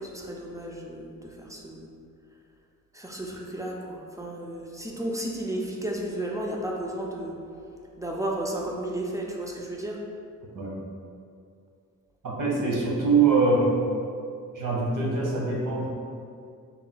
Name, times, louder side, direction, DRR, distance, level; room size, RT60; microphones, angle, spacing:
voice 1, 0.0-1.9 2.9-7.3 8.0-10.0, right 1 dB, 10° right, -2 dB, 0.3 m, -33 dB
voice 2, 12.2-13.8 14.5-15.9, right 4 dB, 70° right, -4 dB, 0.9 m, -23 dB
4.1 x 2.2 x 3.8 m, 2.4 s
wide cardioid pair, 165°, 33 cm